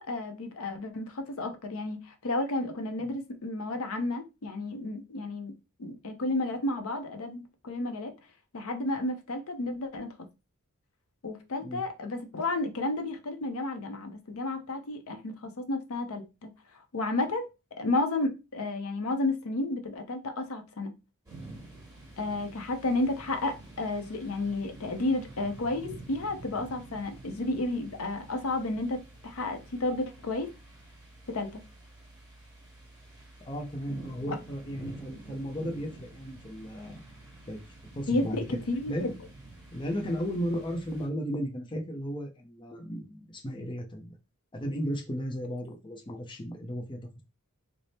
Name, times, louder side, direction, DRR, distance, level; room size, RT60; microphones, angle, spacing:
voice 1, 0.0-5.5 5.8-8.1 8.5-10.1 11.2-16.5 16.9-17.5 17.8-20.9 22.2-30.5 31.3-31.6 34.3-34.4 38.1-39.1, left 2 dB, 65° left, 0.6 m, -32 dB
sound 1, 21.3-41.1, right 2 dB, 15° right, 1.6 m, -49 dB
voice 2, 33.4-37.0 37.5-37.6 37.9-38.6 38.9-39.2 39.7-44.2 44.5-47.2, equal, 20° left, 0.5 m, -35 dB
3.3 x 2.0 x 4.0 m
head